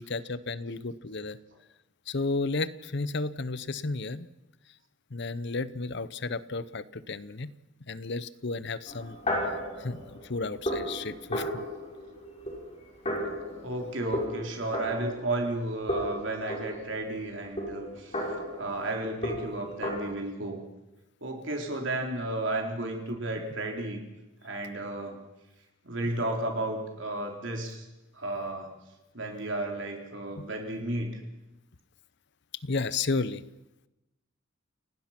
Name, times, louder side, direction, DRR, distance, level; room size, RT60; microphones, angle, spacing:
voice 1, 0.0-1.4 2.1-4.3 5.1-7.5 7.9-9.2 9.8-11.7 26.0-26.1 30.4-30.5 32.6-33.4, left 3 dB, 55° left, 16 dB, 0.8 m, -33 dB
sound 1, 8.9-15.6 15.9-20.0, equal, 30° left, 6.1 m, -35 dB
voice 2, 13.6-18.2 18.6-20.6 21.2-24.0 24.4-25.2 25.8-27.9 28.1-28.7 29.1-31.1, right 2 dB, 60° right, 2 dB, 4.1 m, -33 dB
29.0 x 18.0 x 6.0 m, 0.99 s
head